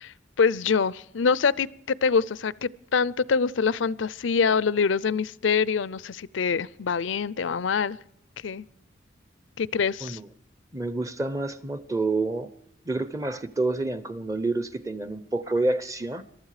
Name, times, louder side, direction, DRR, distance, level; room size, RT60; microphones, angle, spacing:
voice 1, 0.0-1.7 2.0-8.0 8.4-8.6 9.6-10.2, left 5 dB, 80° left, 21 dB, 0.5 m, -25 dB
voice 2, 10.7-12.5 12.8-16.2, right 2 dB, 15° right, 14 dB, 0.7 m, -28 dB
22.5 x 13.0 x 4.9 m, 0.73 s
head